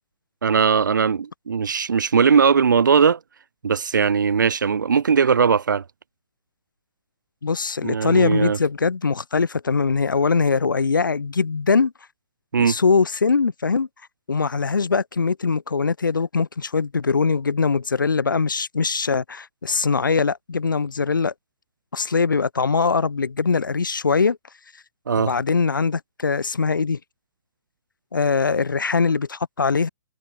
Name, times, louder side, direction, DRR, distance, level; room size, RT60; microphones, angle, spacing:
voice 1, 0.4-3.2 3.6-5.8 7.8-8.6 12.5-12.8 25.1-25.3, right 6 dB, 70° right, 5.8 m, -19 dB
voice 2, 7.4-11.9 12.6-13.9 14.3-21.3 21.9-24.4 25.2-27.0 28.1-29.9, left 5 dB, 75° left, 7.2 m, -22 dB
figure-of-eight pair, 120°, 11 cm